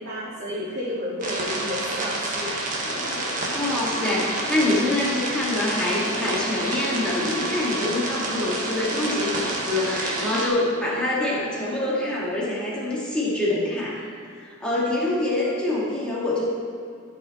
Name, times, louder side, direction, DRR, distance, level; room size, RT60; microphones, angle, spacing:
voice 1, 0.0-2.5, left 1 dB, 55° right, -12 dB, 2.6 m, -31 dB
sound 1, 1.2-10.5, right 2 dB, 40° right, 1.5 m, -29 dB
sound 2, 2.7-12.3, left 2 dB, 50° left, 0.8 m, -38 dB
voice 2, 3.5-16.5, left 2 dB, 5° left, -7 dB, 2.2 m, -25 dB
14.0 x 5.6 x 4.3 m, 2.4 s
head